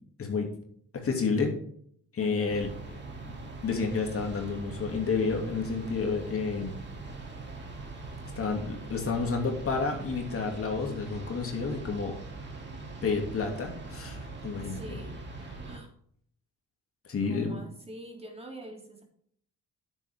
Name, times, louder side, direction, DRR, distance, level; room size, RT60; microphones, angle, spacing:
voice 1, 0.9-1.5 2.1-2.7 3.3-3.4 3.6-6.7 8.4-12.2 13.0-15.0 17.1-17.6, left 4 dB, 50° left, 2 dB, 2.8 m, -30 dB
voice 2, 2.2-2.6 14.6-15.2 15.6-15.9 17.2-19.0, right 1 dB, 20° right, 1 dB, 3.3 m, -45 dB
sound 1, 2.5-15.8, right 3 dB, 35° right, 3.0 m, -42 dB
10.0 x 8.3 x 3.7 m, 0.63 s
cardioid pair, 90°, 30 cm